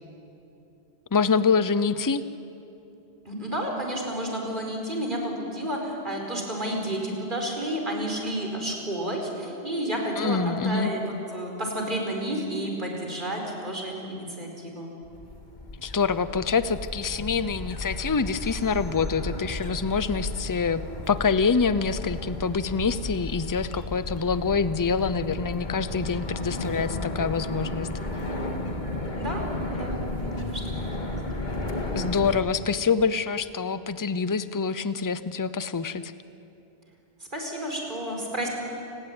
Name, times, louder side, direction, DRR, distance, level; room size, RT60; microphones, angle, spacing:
voice 1, 1.1-2.2 10.2-10.9 15.8-28.4 32.0-36.1, left 5 dB, 20° left, 14 dB, 0.6 m, -26 dB
voice 2, 3.2-10.4 10.6-11.0 11.3-14.9 29.2-29.4 29.7-30.6 31.0-31.2 37.3-38.5, right 1 dB, 50° right, 1 dB, 5.0 m, -31 dB
sound 1, 15.0-32.4, left 2 dB, 45° left, 2.0 m, -34 dB
29.5 x 20.0 x 8.9 m, 2.8 s
omnidirectional pair, 1.1 m